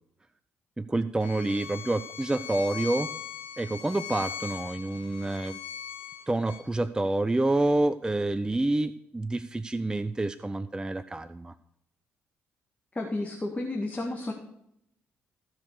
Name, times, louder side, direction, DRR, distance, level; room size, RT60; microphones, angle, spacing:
voice 1, 0.8-3.1 3.6-5.6 6.3-11.5, right 2 dB, 10° right, 14 dB, 0.5 m, -28 dB
Bowed string instrument, 1.2-6.6, left 8 dB, 70° left, 0.9 m, -40 dB
voice 2, 12.9-14.3, left 2 dB, 20° left, 0 dB, 1.9 m, -32 dB
15.0 x 5.1 x 6.6 m, 0.76 s
figure-of-eight pair, 40°, 6 cm